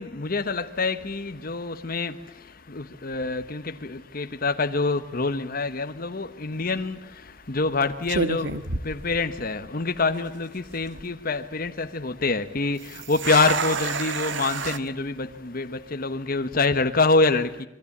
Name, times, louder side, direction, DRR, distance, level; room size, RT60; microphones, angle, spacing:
voice 1, 0.0-17.6, left 3 dB, 50° left, 1.1 m, -26 dB
sound 1, 6.5-6.8 7.6-7.7 8.1-9.7 9.9-10.0 10.7-11.0 12.8-14.8, right 4 dB, 75° right, 1.4 m, -29 dB
26.5 x 22.5 x 8.6 m
head